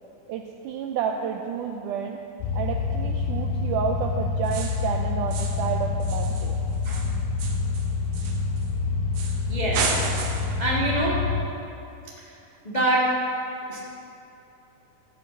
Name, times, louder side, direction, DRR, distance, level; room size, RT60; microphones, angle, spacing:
voice 1, 0.3-2.2 2.5-6.7, right 7 dB, 85° right, 4 dB, 1.8 m, -30 dB
sound 1, 2.4-11.4, left 4 dB, 85° left, 2.9 m, -27 dB
sound 2, 4.4-4.9 5.3-5.7 6.0-8.7 9.1-9.4 9.7-10.6, right 4 dB, 65° right, 2.0 m, -32 dB
voice 2, 9.5-9.9 10.6-11.2 12.6-13.1 13.7-13.8, right 1 dB, 65° left, -7 dB, 0.4 m, -24 dB
13.0 x 5.8 x 8.1 m, 2.8 s
omnidirectional pair, 4.2 m